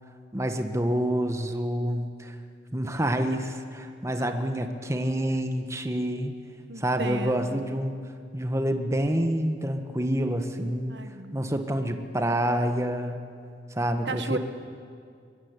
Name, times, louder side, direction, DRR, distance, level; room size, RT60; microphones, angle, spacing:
voice 1, 0.3-2.4 2.7-6.3 6.8-7.9 8.3-11.0 11.3-13.2 13.7-14.4, right 1 dB, 15° right, 6 dB, 1.7 m, -27 dB
voice 2, 6.7-7.6 10.9-11.4 14.0-14.4, right 3 dB, 85° right, 8 dB, 1.5 m, -34 dB
24.5 x 23.0 x 9.8 m, 2.3 s
head